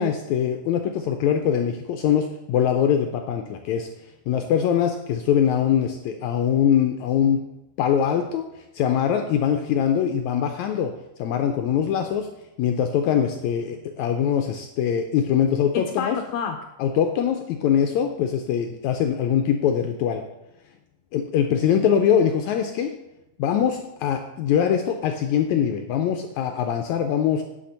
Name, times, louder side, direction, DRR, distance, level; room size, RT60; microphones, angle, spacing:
voice 1, 0.0-3.9 4.3-7.4 7.8-8.5 8.7-10.9 11.2-12.3 12.6-20.2 21.1-22.9 23.4-27.4, left 8 dB, 80° left, 5 dB, 1.7 m, -22 dB
10.5 x 4.4 x 6.7 m, 0.90 s
omnidirectional pair, 3.8 m